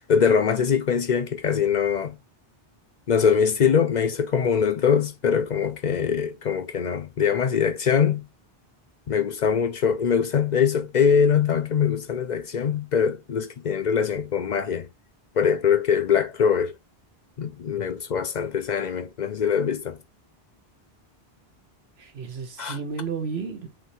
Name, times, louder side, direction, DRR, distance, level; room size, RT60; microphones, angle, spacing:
voice 1, 0.1-2.2 3.1-8.2 9.1-14.9 15.4-16.7 17.4-20.0 22.6-22.8, left 7 dB, 55° left, 0.6 m, -22 dB
voice 2, 22.0-23.7, right 5 dB, 85° right, 1.3 m, -32 dB
5.5 x 2.9 x 3.0 m
omnidirectional pair, 1.0 m